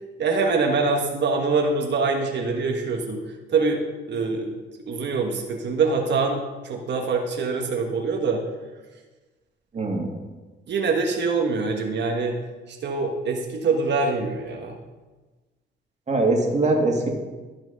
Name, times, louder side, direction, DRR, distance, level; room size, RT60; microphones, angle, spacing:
voice 1, 0.2-3.2 3.5-3.8 4.1-4.5 4.9-8.4 9.7-9.9 10.7-12.4 12.7-14.7, right 4 dB, 60° right, 2 dB, 1.4 m, -24 dB
voice 2, 9.7-10.1 16.1-17.1, right 2 dB, 35° right, 0 dB, 2.5 m, -22 dB
13.0 x 6.1 x 5.3 m, 1.3 s
cardioid pair, 90°, 20 cm